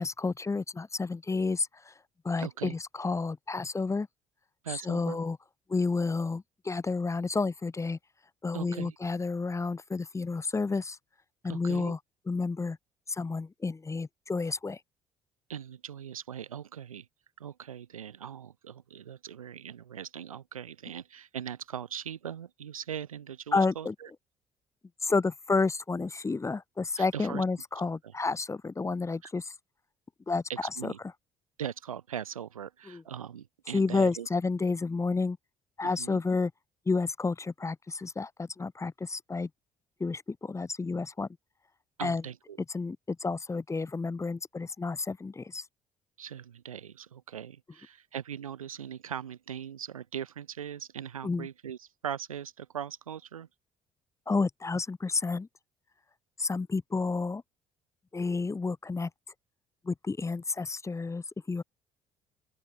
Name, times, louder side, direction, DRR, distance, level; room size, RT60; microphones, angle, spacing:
voice 1, 0.0-1.9 2.2-4.1 4.7-5.4 5.7-8.0 8.4-11.0 11.4-12.0 12.3-12.8 13.1-14.8 23.5-23.9 25.0-29.5 30.3-30.4 30.8-30.9 32.9-33.0 33.7-35.4 35.8-36.5 36.9-39.5 40.0-41.3 42.0-42.2 42.7-45.6 51.2-51.5 54.3-55.5 56.4-57.4 58.1-59.1 59.8-61.6, left 4 dB, 15° left, 0.7 m, -30 dB
voice 2, 2.4-2.8 4.6-5.2 8.5-9.0 11.5-12.0 15.5-17.1 17.4-24.1 27.0-27.4 28.0-28.1 30.5-31.0 31.6-34.3 35.8-36.2 42.0-42.6 46.2-53.5, right 9 dB, 85° right, 0.5 m, -40 dB
open air
figure-of-eight pair, 50°, 17 cm